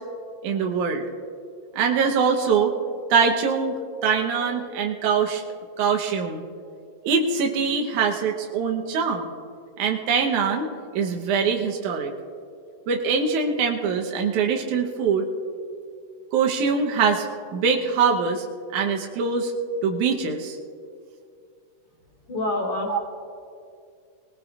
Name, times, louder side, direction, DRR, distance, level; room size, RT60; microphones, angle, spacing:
voice 1, 0.4-1.1 1.8-2.7 3.1-5.4 5.8-6.4 7.0-9.3 9.8-12.1 12.9-15.3 16.3-18.4 18.7-19.5 19.8-20.6 22.9-23.0, right 5 dB, 80° right, 1 dB, 2.4 m, -23 dB
voice 2, 22.3-23.0, left 1 dB, 60° left, -2 dB, 4.2 m, -26 dB
20.5 x 20.0 x 2.4 m, 2.4 s
omnidirectional pair, 3.5 m